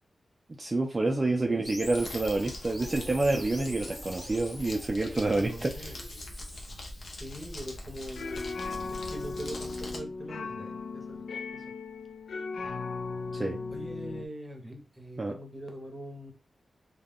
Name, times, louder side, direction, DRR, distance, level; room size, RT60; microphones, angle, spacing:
voice 1, 0.6-5.9 13.3-13.6 15.2-15.4, right 2 dB, 35° right, 2 dB, 0.4 m, -28 dB
voice 2, 1.4-1.8 5.3-6.0 7.1-8.5 8.9-11.2 11.5-11.6 13.7-16.3, equal, 10° right, 3 dB, 0.9 m, -43 dB
sound 1, 1.6-6.7, left 1 dB, 20° left, 1.1 m, -44 dB
Crumpling crinkling, 1.8-10.0, left 1 dB, 65° left, 0.7 m, -42 dB
sound 2, 7.9-14.3, left 4 dB, 80° left, 0.3 m, -37 dB
2.3 x 2.1 x 3.5 m, 0.32 s
cardioid pair, 65°, 0 cm